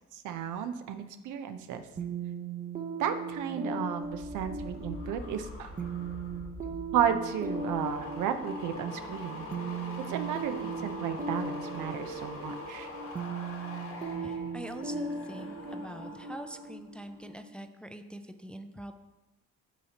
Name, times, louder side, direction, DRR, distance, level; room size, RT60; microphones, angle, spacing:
voice 1, 0.1-1.8 3.0-5.7 6.9-9.5 10.1-12.9, right 8 dB, 85° right, 8 dB, 0.7 m, -33 dB
sound 1, 2.0-17.6, right 4 dB, 30° right, 0.7 m, -38 dB
sound 2, 4.0-16.7 17.0-17.4, left 2 dB, 45° left, 1.4 m, -43 dB
voice 2, 14.2-18.9, equal, 5° left, 7 dB, 0.4 m, -44 dB
12.0 x 4.2 x 2.9 m, 1.1 s
cardioid pair, 90°, 30 cm